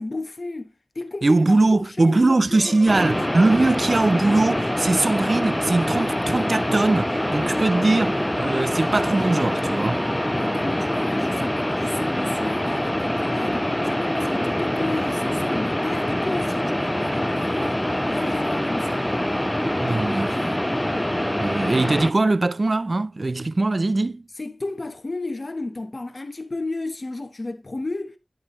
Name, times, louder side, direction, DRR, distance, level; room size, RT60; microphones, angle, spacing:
voice 1, 0.0-3.3 10.3-19.2 24.4-28.2, left 2 dB, 55° left, 1.1 m, -33 dB
voice 2, 1.2-10.0 19.8-20.5 21.4-24.3, right 2 dB, 55° right, 0.4 m, -21 dB
sound 1, 2.5-19.8, right 1 dB, 20° right, 3.0 m, -41 dB
sound 2, 2.9-22.1, left 1 dB, 10° left, 0.4 m, -24 dB
10.0 x 7.0 x 3.0 m
wide cardioid pair, 65°, 0 cm